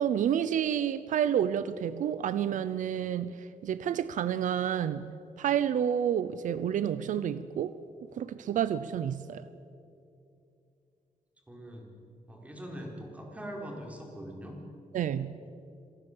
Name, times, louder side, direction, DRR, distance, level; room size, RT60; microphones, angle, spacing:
voice 1, 0.0-3.4 3.6-5.1 5.4-7.8 8.2-9.4 14.9-15.3, right 9 dB, 80° right, 0.7 m, -29 dB
voice 2, 11.5-12.0 12.3-14.6, equal, 10° right, 4.2 m, -42 dB
25.5 x 17.5 x 7.3 m
wide cardioid pair, 135°, 13 cm